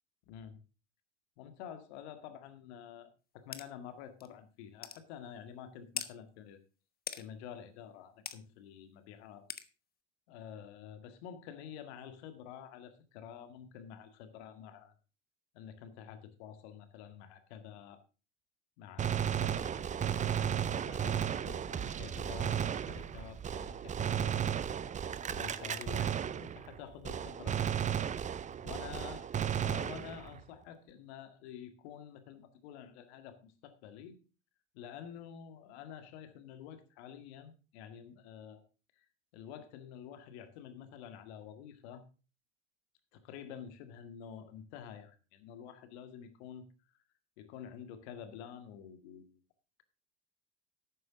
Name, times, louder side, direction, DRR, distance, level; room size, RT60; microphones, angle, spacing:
voice 1, 0.3-0.6 1.4-3.1 3.3-6.6 7.2-9.4 10.3-14.9 15.5-18.0 18.8-24.6 25.3-26.1 26.4-27.8 28.6-29.3 29.6-34.2 34.7-38.6 39.0-39.1 39.3-42.0 43.1-46.7 47.4-49.4, left 8 dB, 65° left, 9 dB, 1.9 m, -49 dB
sound 1, 3.5-3.7 4.2-4.3 4.8-5.0 6.0-6.1 7.1-7.2 8.3-8.4 9.5-9.7, left 7 dB, 25° left, 1.1 m, -40 dB
Gunshot gunfire, 19.0-26.8 27.0-30.4, right 9 dB, 20° right, 0.6 m, -34 dB
12.0 x 9.4 x 3.7 m, 0.33 s
hypercardioid pair, 75°, 35 cm